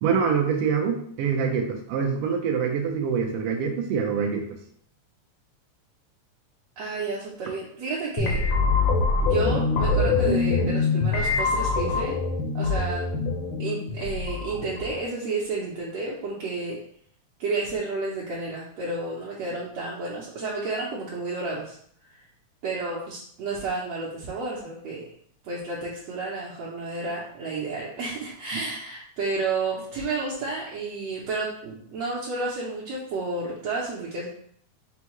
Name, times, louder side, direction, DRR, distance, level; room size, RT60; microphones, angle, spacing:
voice 1, 0.0-4.4, right 6 dB, 90° right, 2 dB, 1.3 m, -25 dB
voice 2, 6.8-8.4 9.2-12.2 12.5-13.1 13.6-16.8 17.4-21.8 22.1-22.2 22.6-25.0 25.4-34.3, right 3 dB, 70° right, -6 dB, 1.7 m, -31 dB
sound 1, 8.2-15.1, left 4 dB, 80° left, 1.2 m, -24 dB
6.2 x 2.3 x 2.9 m, 0.63 s
omnidirectional pair, 3.5 m